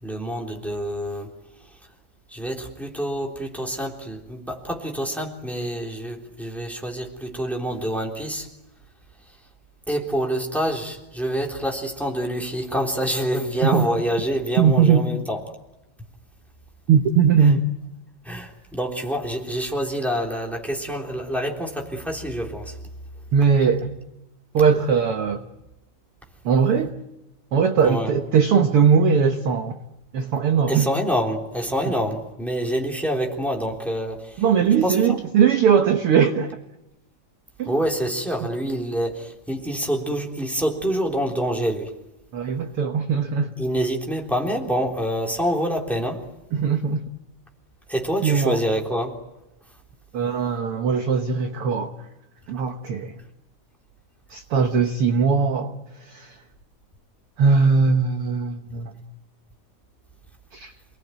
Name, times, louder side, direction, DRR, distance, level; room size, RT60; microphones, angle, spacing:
voice 1, 0.0-1.3 2.3-8.5 9.9-15.4 18.2-22.8 27.8-28.1 30.7-34.4 34.8-35.2 37.7-41.9 43.6-46.2 47.9-49.2, equal, ahead, 1 dB, 3.1 m, -26 dB
voice 2, 14.6-15.1 16.9-17.7 23.3-24.0 24.5-25.4 26.4-26.9 27.5-29.7 30.1-30.9 31.9-32.0 34.4-36.5 37.6-37.8 42.3-43.5 46.5-47.1 48.2-48.6 50.1-52.1 52.5-53.1 54.3-55.7 56.0-56.4 57.4-58.9 60.5-60.7, right 6 dB, 60° right, 6 dB, 1.5 m, -20 dB
29.0 x 20.0 x 9.4 m, 0.98 s
omnidirectional pair, 3.8 m